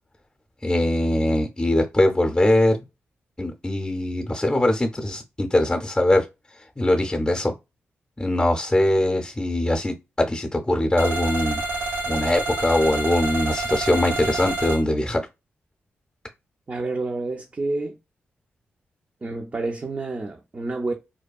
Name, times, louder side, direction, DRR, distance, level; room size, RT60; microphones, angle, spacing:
voice 1, 0.6-2.8 3.4-6.3 6.8-7.5 8.2-11.6 12.1-15.2, left 1 dB, 15° left, 0.6 m, -22 dB
sound 1, 11.0-14.8, right 2 dB, 75° right, 0.8 m, -28 dB
voice 2, 16.7-18.0 19.2-20.9, right 2 dB, 35° right, 0.4 m, -29 dB
2.6 x 2.2 x 2.3 m
cardioid pair, 50°, 4 cm